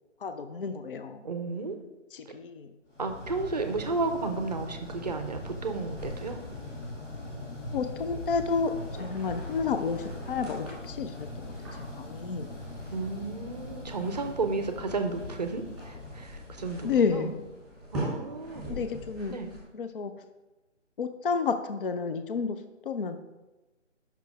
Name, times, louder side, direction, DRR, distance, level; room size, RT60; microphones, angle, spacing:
voice 1, 0.2-1.3 2.1-2.8 7.7-8.7 9.0-12.6 16.8-17.4 18.7-19.4 19.7-20.1 21.0-23.2, left 5 dB, 50° left, 9 dB, 0.5 m, -31 dB
voice 2, 1.2-1.8 2.3-2.4 3.0-6.4 12.9-17.3 17.9-18.6 19.3-19.5, right 3 dB, 35° right, 7 dB, 0.6 m, -33 dB
sound 1, 2.9-17.9, left 2 dB, 75° left, 2.3 m, -41 dB
sound 2, 5.9-19.6, right 1 dB, ahead, 2.1 m, -44 dB
5.9 x 5.8 x 4.7 m, 1.1 s
figure-of-eight pair, 155°, 37 cm